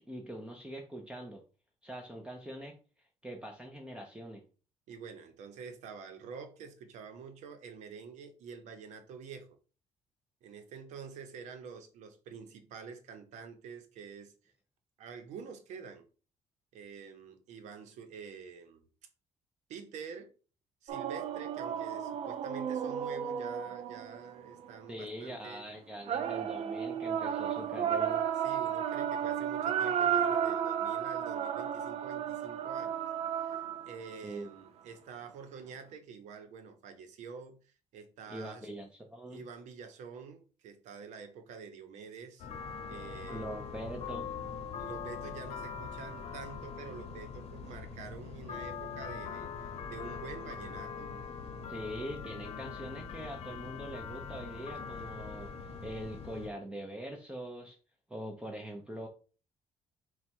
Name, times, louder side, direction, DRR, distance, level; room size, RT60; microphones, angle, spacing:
voice 1, 0.1-1.4 1.8-2.8 3.2-4.4 24.9-28.2 34.2-34.5 38.3-39.4 43.3-44.3 51.7-57.8 58.1-59.1, right 1 dB, 10° right, 0.7 m, -43 dB
voice 2, 4.9-9.6 10.4-14.5 15.0-16.1 16.7-18.9 19.7-20.3 20.8-25.6 28.4-33.1 33.3-38.7 39.3-43.5 44.8-51.1, right 6 dB, 80° right, 0.8 m, -47 dB
sound 1, 20.9-24.7 26.1-34.2, right 8 dB, 60° right, 0.5 m, -33 dB
sound 2, 42.4-56.5, left 6 dB, 60° left, 0.8 m, -42 dB
4.3 x 2.3 x 4.4 m
cardioid pair, 95°, 12 cm